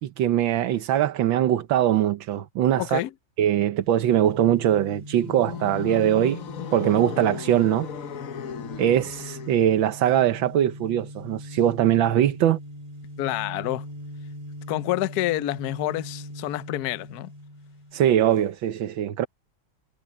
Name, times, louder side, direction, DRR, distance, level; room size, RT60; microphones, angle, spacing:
voice 1, 0.0-3.0 3.4-6.4 6.7-7.9 8.8-12.6 17.9-19.3, right 11 dB, 75° right, 1.7 m, -22 dB
voice 2, 2.8-3.1 13.2-13.8 14.7-17.3, left 15 dB, 70° left, 0.9 m, -28 dB
sound 1, 3.7-18.3, equal, 15° right, 3.3 m, -41 dB
sound 2, 5.2-9.8, left 9 dB, 50° left, 1.2 m, -36 dB
omnidirectional pair, 2.2 m